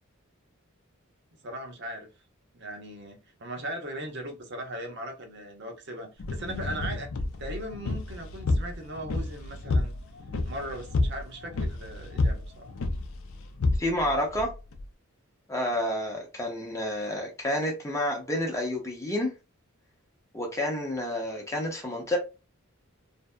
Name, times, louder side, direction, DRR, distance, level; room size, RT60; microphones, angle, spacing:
voice 1, 1.4-2.1 2.5-7.1 7.4-9.9 10.4-12.7, right 1 dB, 55° right, 0.8 m, -38 dB
sound 1, 6.2-14.9, left 2 dB, 70° left, 0.5 m, -30 dB
voice 2, 13.8-14.5 15.5-19.3 20.3-22.2, left 1 dB, 15° left, 0.7 m, -29 dB
2.7 x 2.5 x 2.2 m
head